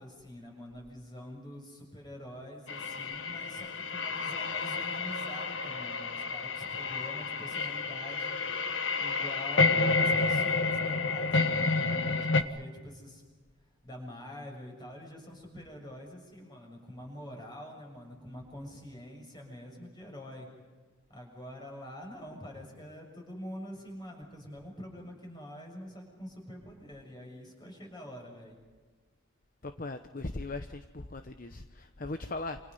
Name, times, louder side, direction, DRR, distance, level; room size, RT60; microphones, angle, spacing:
voice 1, 0.0-8.4 9.0-13.2 13.8-20.5 21.1-28.6, left 1 dB, 20° left, 1 dB, 7.1 m, -46 dB
sound 1, 2.7-12.4, left 3 dB, 70° left, 1.5 m, -30 dB
voice 2, 29.6-32.6, left 2 dB, 45° left, 8 dB, 1.0 m, -39 dB
28.0 x 28.0 x 5.6 m, 1.3 s
head